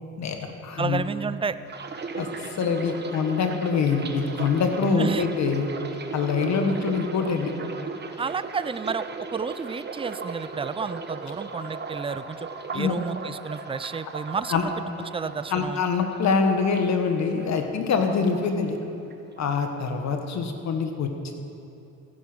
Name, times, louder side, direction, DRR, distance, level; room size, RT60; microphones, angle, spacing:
voice 1, 0.2-1.0 2.2-5.7 6.1-7.5 12.7-12.9 14.5-14.6 15.5-18.8 19.4-21.3, left 5 dB, 65° left, 5 dB, 1.5 m, -25 dB
voice 2, 0.8-1.6 5.0-5.3 8.2-14.8 15.1-15.8, right 5 dB, 20° right, 14 dB, 0.4 m, -31 dB
sound 1, 1.7-17.6 17.9-18.8 19.1-19.5, right 4 dB, 35° right, 1.1 m, -36 dB
15.5 x 10.5 x 6.1 m, 2.8 s
cardioid pair, 90°, 30 cm